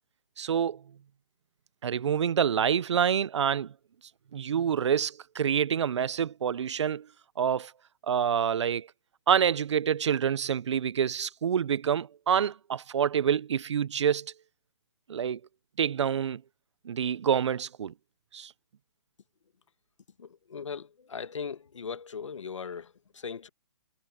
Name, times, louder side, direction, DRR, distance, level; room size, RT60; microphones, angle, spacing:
voice 1, 0.4-0.8 1.8-3.7 4.3-7.1 7.4-7.7 8.1-8.9 9.3-14.3 15.1-15.4 15.8-16.4 16.8-17.9 18.3-18.5, right 8 dB, 70° right, 0.6 m, -27 dB
voice 2, 20.2-23.5, left 6 dB, 85° left, 1.5 m, -39 dB
hypercardioid pair, 155°, 15 cm